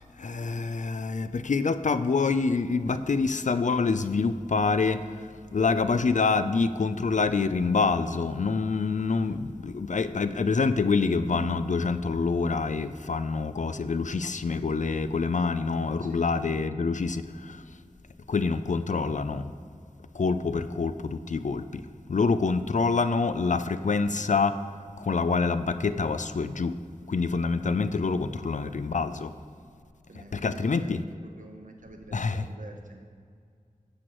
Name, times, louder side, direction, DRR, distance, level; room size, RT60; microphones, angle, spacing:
voice 1, 0.2-5.0 5.5-17.6 18.3-19.5 20.2-21.6 22.1-24.6 25.0-26.8 27.1-29.3 30.3-31.0 32.1-32.4, left 4 dB, 60° left, 12 dB, 0.4 m, -26 dB
voice 2, 16.0-16.7 30.1-33.1, right 2 dB, 70° right, 3 dB, 0.9 m, -48 dB
12.5 x 7.7 x 3.0 m, 2.2 s
wide cardioid pair, 45°, 14 cm